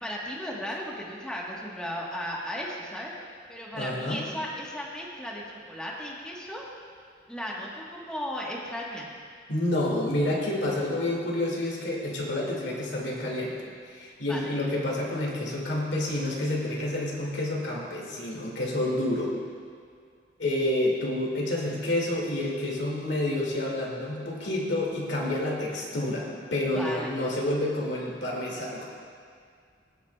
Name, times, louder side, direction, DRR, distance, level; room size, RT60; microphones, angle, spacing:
voice 1, 0.0-3.1 3.5-6.6 7.3-9.1 14.3-14.6 26.7-27.1, equal, 5° left, -4 dB, 1.2 m, -35 dB
voice 2, 3.7-4.2 9.5-13.6 13.9-19.3 20.4-28.8, left 1 dB, 75° left, -3 dB, 2.1 m, -29 dB
21.5 x 8.6 x 2.3 m, 2.1 s
head